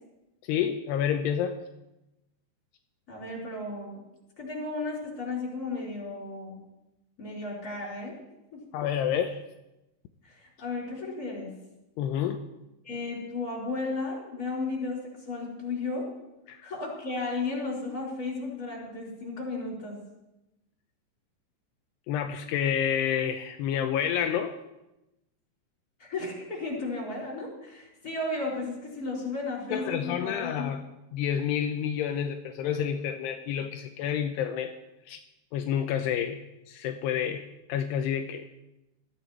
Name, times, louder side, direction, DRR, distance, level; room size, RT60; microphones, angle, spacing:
voice 1, 0.4-1.6 8.7-9.4 12.0-12.4 16.5-16.6 22.1-24.5 29.7-30.8 31.1-34.7 35.1-35.2 35.5-36.4 36.7-38.5, left 9 dB, 80° left, 6 dB, 2.8 m, -29 dB
voice 2, 3.1-4.0 4.4-6.6 7.2-8.2 8.5-8.6 10.2-11.5 12.8-16.1 16.6-20.0 26.0-30.7, left 3 dB, 20° left, -3 dB, 5.3 m, -34 dB
20.5 x 14.5 x 4.6 m, 0.95 s
omnidirectional pair, 5.0 m